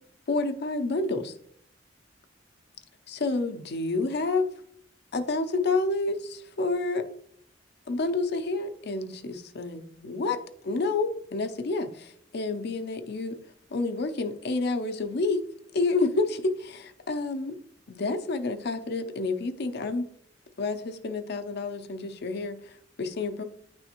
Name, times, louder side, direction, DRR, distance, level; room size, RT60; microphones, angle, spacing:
voice 1, 0.3-1.3 3.1-4.5 5.1-7.0 7.9-13.4 13.7-15.4 15.7-17.6 17.9-20.0 20.6-23.4, left 3 dB, 60° left, 8 dB, 0.6 m, -29 dB
9.9 x 3.4 x 2.9 m, 0.65 s
head